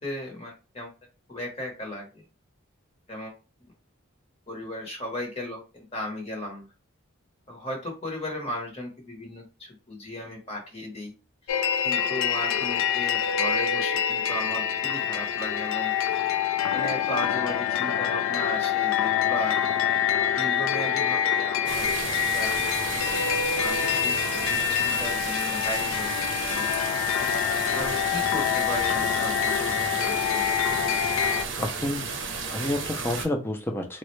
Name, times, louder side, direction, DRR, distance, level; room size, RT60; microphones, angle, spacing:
voice 1, 0.0-0.9 1.3-2.2 3.1-3.3 4.5-6.7 7.5-11.1 11.4-15.9 16.7-19.6 20.3-21.9 22.3-22.7 23.6-26.1 26.5-26.7 27.7-29.7 30.0-30.5, left 1 dB, 30° left, 0 dB, 0.8 m, -36 dB
sound 1, 11.5-31.5, left 8 dB, 75° left, 0.3 m, -26 dB
sound 2, 21.7-33.3, right 4 dB, 60° right, 0.6 m, -33 dB
voice 2, 31.6-32.1 32.5-34.0, left 1 dB, 10° left, 3 dB, 0.4 m, -29 dB
3.6 x 2.1 x 3.0 m, 0.32 s
head